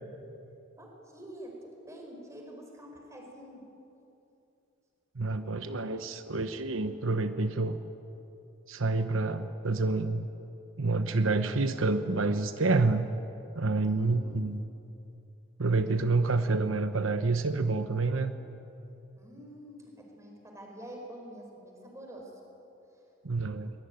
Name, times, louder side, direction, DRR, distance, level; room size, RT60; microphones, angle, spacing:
voice 1, 0.8-3.7 14.0-14.4 19.2-22.3, right 1 dB, 15° right, 1 dB, 4.9 m, -47 dB
voice 2, 5.2-7.8 8.7-10.3 10.8-13.1 13.6-14.6 15.6-18.3 23.2-23.7, right 3 dB, 85° right, 10 dB, 1.0 m, -28 dB
23.0 x 20.5 x 9.3 m, 2.9 s
head